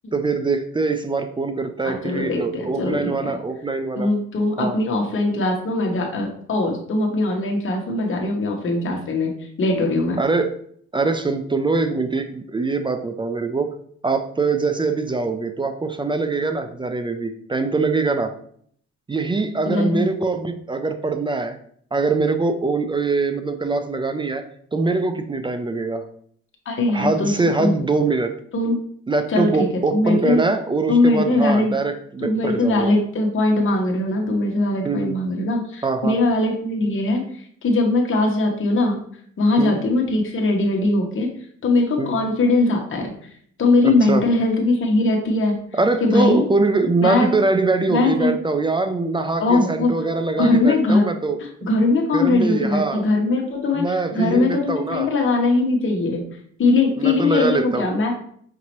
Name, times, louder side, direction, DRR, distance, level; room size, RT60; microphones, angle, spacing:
voice 1, 0.1-4.1 4.6-4.8 10.2-10.5 10.9-13.7 14.0-18.3 19.1-21.6 21.9-24.5 24.7-26.1 26.9-28.3 29.1-32.9 34.8-35.1 35.8-36.2 39.6-39.7 42.0-42.1 43.8-44.2 45.7-51.4 52.1-53.0 53.7-55.1 57.0-57.9, right 3 dB, 15° right, 8 dB, 0.4 m, -23 dB
voice 2, 1.8-3.3 4.0-10.2 19.7-20.1 26.6-27.3 27.6-27.7 28.5-28.7 29.3-30.4 30.9-31.7 32.2-39.0 39.4-41.3 41.6-43.1 43.6-45.6 46.0-46.5 47.0-47.3 47.9-48.3 49.4-49.9 50.4-51.0 51.6-53.8 54.1-56.3 56.6-58.1, left 2 dB, 45° left, 0 dB, 1.1 m, -20 dB
5.2 x 2.8 x 3.0 m, 0.62 s
cardioid pair, 90°, 30 cm